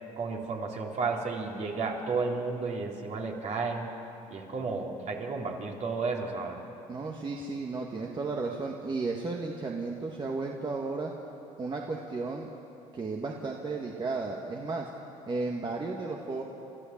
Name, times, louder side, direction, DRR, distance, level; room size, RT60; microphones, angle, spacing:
voice 1, 0.2-3.9 4.3-6.6, right 4 dB, 50° right, 0 dB, 3.3 m, -32 dB
voice 2, 6.9-11.1 11.6-12.5 12.9-14.9 15.3-16.4, right 3 dB, 30° right, 0 dB, 1.8 m, -34 dB
29.5 x 13.0 x 7.4 m, 2.9 s
supercardioid pair, 80°, 15 cm